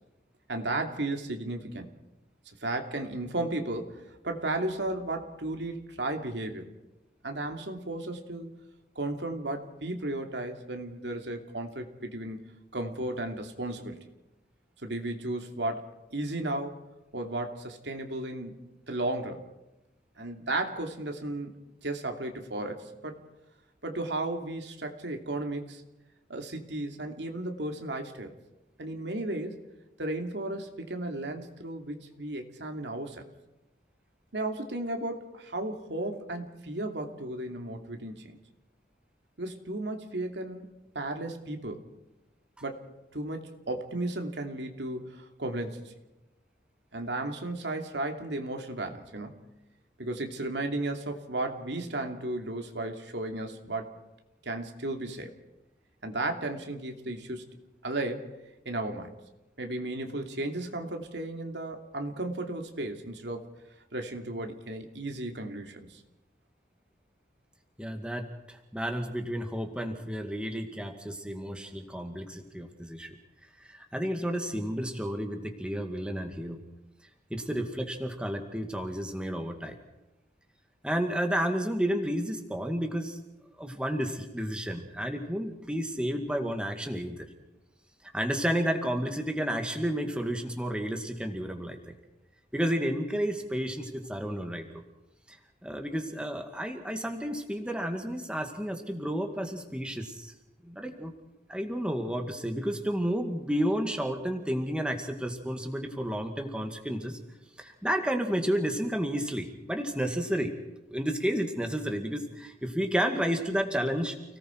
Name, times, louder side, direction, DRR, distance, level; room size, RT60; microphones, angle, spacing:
voice 1, 0.5-1.9 2.6-6.6 7.2-8.5 8.9-12.4 12.7-14.0 14.8-16.8 17.1-18.6 18.9-19.5 20.2-21.5 21.8-23.2 23.8-25.8 26.3-28.3 28.8-29.6 30.0-33.2 34.3-38.4 39.4-41.9 42.6-42.8 43.1-45.9 46.9-49.4 50.0-53.9 54.4-55.3 56.0-57.5 57.8-58.3 58.6-59.1 59.6-63.5 63.9-66.0, right 2 dB, 90° right, 4 dB, 2.8 m, -34 dB
voice 2, 67.8-73.2 73.6-76.6 77.3-79.8 80.8-83.2 83.6-87.3 88.1-92.0 92.5-94.8 95.3-95.4 95.6-100.3 100.6-101.1 101.5-107.2 107.6-110.5 110.9-114.2, equal, 5° right, 4 dB, 2.1 m, -31 dB
30.0 x 19.0 x 4.7 m, 0.97 s
head